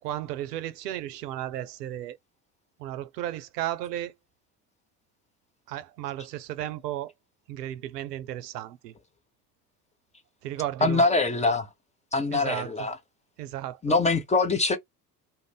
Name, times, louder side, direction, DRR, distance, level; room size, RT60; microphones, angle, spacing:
voice 1, 0.0-2.2 2.8-4.1 5.7-7.1 7.5-8.9 10.4-11.0 12.3-12.9 13.4-14.0, right 13 dB, 75° right, 0.5 m, -34 dB
voice 2, 10.8-11.7 12.1-13.0 13.8-14.8, left 3 dB, 15° left, 0.6 m, -23 dB
2.5 x 2.0 x 3.3 m
figure-of-eight pair, 55°, 48 cm